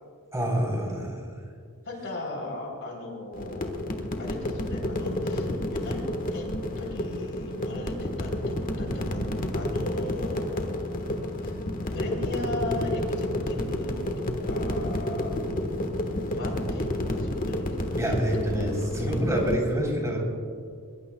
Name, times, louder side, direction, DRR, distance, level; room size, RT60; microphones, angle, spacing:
voice 1, 0.3-1.2 18.0-20.2, equal, 15° right, -2 dB, 3.7 m, -26 dB
voice 2, 0.9-1.2 1.9-3.7 4.2-6.0 6.3-6.5 6.8-10.7 11.4-11.5 11.9-15.3 16.3-17.8 18.2-18.3 18.7-18.8, left 2 dB, 60° left, 0 dB, 3.7 m, -37 dB
sound 1, 3.3-19.6, left 1 dB, 40° left, 1.4 m, -30 dB
22.5 x 22.0 x 2.3 m, 2.2 s
head